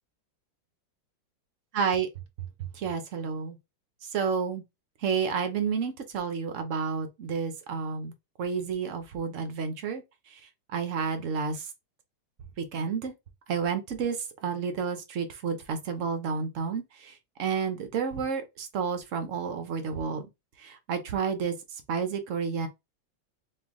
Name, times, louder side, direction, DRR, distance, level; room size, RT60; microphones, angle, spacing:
voice 1, 1.7-2.1 2.7-3.6 4.1-4.6 5.0-8.1 8.4-10.0 10.3-10.4 10.7-11.6 12.6-13.1 13.5-14.2 14.4-20.3 20.6-21.5 21.9-22.7, right 6 dB, 60° right, 0.8 m, -30 dB
4.4 x 2.6 x 3.5 m
omnidirectional pair, 2.2 m